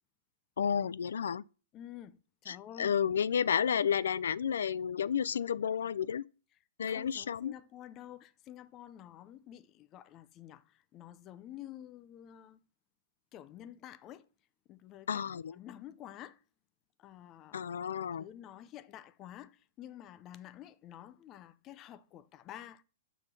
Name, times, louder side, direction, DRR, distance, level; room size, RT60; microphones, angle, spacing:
voice 1, 0.6-1.4 2.5-6.2 6.8-7.5 15.1-15.5 17.5-18.2, left 7 dB, 90° left, 0.3 m, -31 dB
voice 2, 1.7-2.9 6.8-12.6 13.3-14.3 14.7-16.4 17.0-17.7 18.0-22.8, left 11 dB, 25° left, 0.4 m, -50 dB
9.0 x 3.7 x 6.1 m
hypercardioid pair, 160°, 0 cm